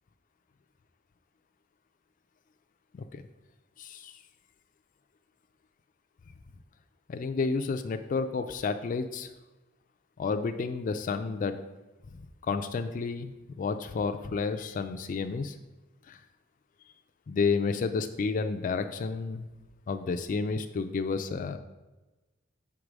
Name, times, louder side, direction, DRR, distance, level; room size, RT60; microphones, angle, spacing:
voice 1, 3.8-4.1 7.1-9.3 10.2-11.6 12.4-15.5 16.1-16.2 17.3-19.5 19.9-21.6, left 4 dB, 40° left, 8 dB, 0.3 m, -31 dB
5.8 x 4.7 x 5.1 m, 1.1 s
head